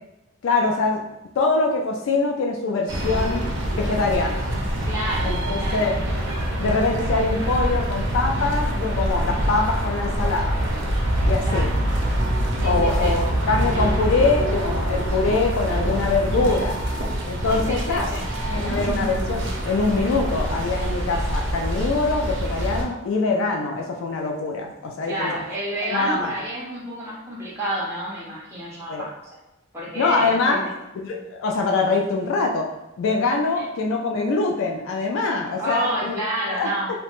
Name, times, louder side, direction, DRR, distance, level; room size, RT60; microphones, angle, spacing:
voice 1, 0.4-1.0 1.4-3.4 3.7-4.5 5.2-6.0 6.6-10.6 11.3-11.7 12.6-16.8 17.3-18.2 18.5-25.4 25.9-26.3 28.9-29.1 30.0-30.6 31.0-36.2 36.6-36.7, left 3 dB, 70° left, 1 dB, 0.3 m, -23 dB
sound 1, 2.9-22.8, right 1 dB, 60° right, 0.6 m, -25 dB
voice 2, 4.9-5.3 5.6-5.8 11.4-11.7 12.6-13.1 17.5-18.2 25.0-29.1 29.7-30.7 33.6-33.7 35.6-36.9, right 1 dB, 10° right, -7 dB, 0.6 m, -29 dB
2.8 x 2.1 x 2.9 m, 0.93 s
head